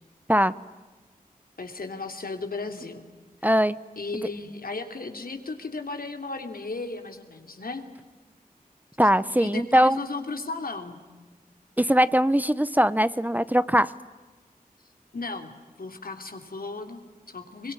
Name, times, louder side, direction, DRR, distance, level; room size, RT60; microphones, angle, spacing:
voice 1, 1.6-3.0 4.0-7.8 9.4-11.0 15.1-15.5 15.8-17.7, left 3 dB, 75° left, 6 dB, 2.9 m, -35 dB
voice 2, 3.4-3.8 9.0-10.0 11.8-13.9, equal, 10° right, 16 dB, 0.8 m, -21 dB
24.0 x 23.0 x 9.8 m, 1.3 s
wide cardioid pair, 50°, 15 cm